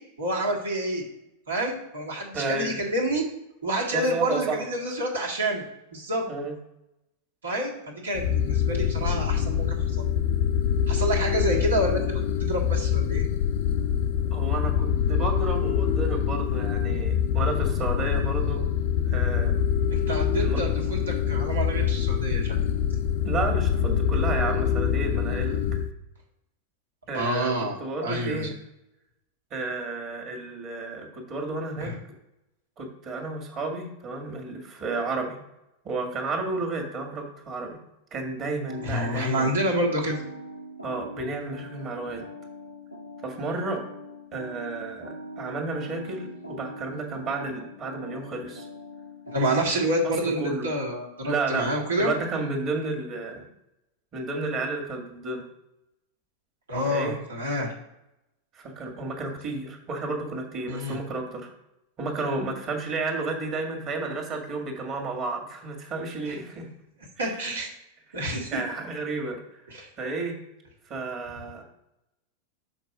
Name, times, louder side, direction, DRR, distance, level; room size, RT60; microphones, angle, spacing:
voice 1, 0.2-1.0 1.5-3.2 3.6-5.6 5.9-6.2 7.4-10.0 10.9-12.0 12.4-13.2 19.9-22.6 27.1-28.4 31.8-31.9 38.8-40.2 49.3-52.1 56.7-57.7 60.7-61.0 66.3-66.4 67.2-67.7 68.1-68.6 69.7-69.9, right 1 dB, 70° right, -1 dB, 1.9 m, -28 dB
voice 2, 2.3-2.8 3.9-4.7 6.3-6.5 14.3-18.6 19.0-19.5 20.4-20.6 23.2-25.6 27.1-27.5 27.8-28.5 29.5-31.9 32.8-35.4 35.8-37.8 38.1-39.5 40.8-42.2 43.2-43.8 44.3-48.7 49.8-50.7 51.2-51.7 52.0-53.5 54.1-55.4 56.8-57.2 58.5-61.5 62.0-66.7 67.2-67.6 68.1-68.2 68.5-69.6 70.0-70.3 70.8-71.6, right 3 dB, 30° right, 3 dB, 1.9 m, -32 dB
sound 1, 8.1-25.9, left 8 dB, 50° left, 0.4 m, -25 dB
sound 2, 38.7-50.0, equal, 85° right, 1.0 m, -42 dB
6.5 x 4.6 x 5.0 m, 0.88 s
figure-of-eight pair, 90°, 0 cm